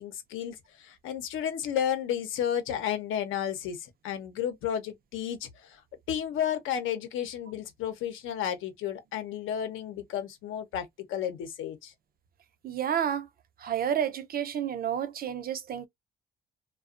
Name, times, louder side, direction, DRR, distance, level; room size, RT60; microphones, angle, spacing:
voice 1, 0.0-5.8 6.1-11.9, left 9 dB, 90° left, 0.7 m, -32 dB
voice 2, 12.6-13.3 13.6-15.9, right 9 dB, 50° right, 0.5 m, -30 dB
2.4 x 2.2 x 2.4 m
cardioid pair, 90°, 20 cm